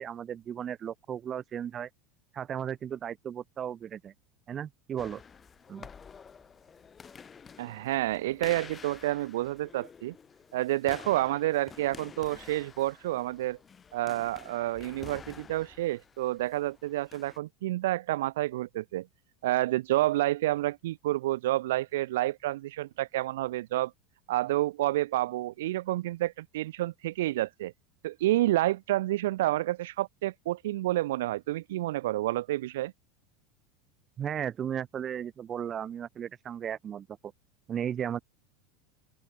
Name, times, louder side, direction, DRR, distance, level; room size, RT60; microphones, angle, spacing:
voice 1, 0.0-1.9 2.3-4.1 4.5-5.2 5.7-5.9 34.2-37.3 37.7-38.2, right 9 dB, 25° right, 3.9 m, -35 dB
sound 1, 5.0-17.4, left 6 dB, 20° left, 4.3 m, -50 dB
voice 2, 7.6-10.1 10.5-13.6 13.9-19.1 19.4-23.9 24.3-27.7 28.0-32.9, right 16 dB, 85° right, 2.1 m, -29 dB
open air
supercardioid pair, 145°, 0 cm